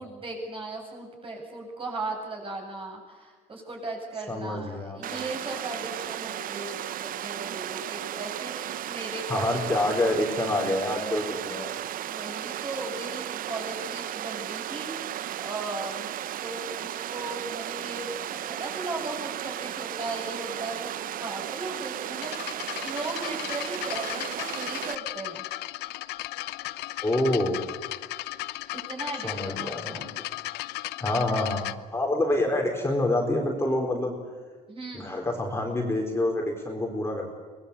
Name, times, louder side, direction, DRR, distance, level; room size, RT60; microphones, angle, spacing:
voice 1, 0.0-9.8 11.9-15.1 15.4-16.1 16.4-20.9 21.2-25.4 28.7-30.0 34.7-35.1, right 2 dB, 30° right, 0 dB, 7.9 m, -37 dB
voice 2, 4.3-5.3 9.3-11.8 27.0-27.6 29.2-30.0 31.0-34.2 34.9-37.3, left 1 dB, 15° left, 1 dB, 4.3 m, -27 dB
Water, 5.0-25.0, right 12 dB, 55° right, 0.7 m, -35 dB
sound 1, 22.2-31.7, left 17 dB, 90° left, 0.8 m, -36 dB
24.5 x 20.0 x 8.5 m, 1.5 s
cardioid pair, 110°, 17 cm